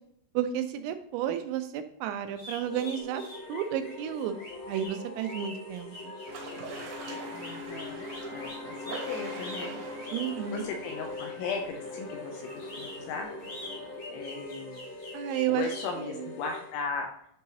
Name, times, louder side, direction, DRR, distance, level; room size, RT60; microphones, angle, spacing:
voice 1, 0.3-3.2 3.5-4.4 4.7-6.1 10.1-10.6 15.1-15.6 16.0-16.1, right 10 dB, 90° right, 8 dB, 3.3 m, -32 dB
sound 1, 2.3-11.7 12.4-15.9, left 2 dB, 45° left, 1.3 m, -45 dB
sound 2, 2.6-16.8, left 2 dB, 65° left, 3.8 m, -42 dB
sound 3, 6.3-14.0, right 1 dB, 70° right, 1.9 m, -43 dB
voice 2, 7.3-8.1 8.3-9.8 10.4-13.3 14.1-14.8 15.5-17.1, left 5 dB, 80° left, 2 dB, 2.9 m, -37 dB
10.5 x 3.8 x 2.8 m, 0.71 s
omnidirectional pair, 5.9 m